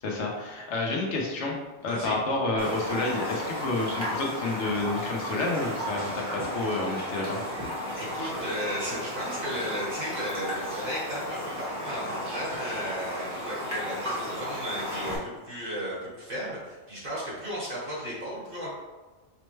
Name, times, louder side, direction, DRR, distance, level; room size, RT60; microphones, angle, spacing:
voice 1, 0.0-1.5 1.8-7.4, left 2 dB, 85° left, -1 dB, 1.1 m, -29 dB
Raindrop, 2.6-15.2, equal, 15° right, 1.0 m, -34 dB
voice 2, 7.9-18.7, equal, 50° right, -7 dB, 1.7 m, -35 dB
5.3 x 2.1 x 3.1 m, 1.2 s
omnidirectional pair, 1.2 m